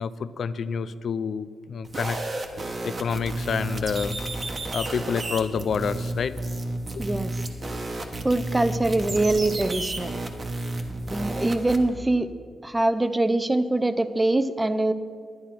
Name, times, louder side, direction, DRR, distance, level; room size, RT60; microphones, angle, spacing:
voice 1, 0.0-2.2 2.8-4.2 4.7-6.4 6.9-7.0, left 6 dB, 65° left, 15 dB, 0.5 m, -28 dB
sound 1, 1.8-11.8, right 2 dB, 40° right, 1.4 m, -32 dB
voice 2, 7.0-7.3 8.2-10.1 11.1-12.3 12.6-14.9, right 2 dB, 15° right, 11 dB, 0.6 m, -23 dB
11.0 x 9.9 x 5.9 m, 2.1 s
cardioid pair, 90°, 0 cm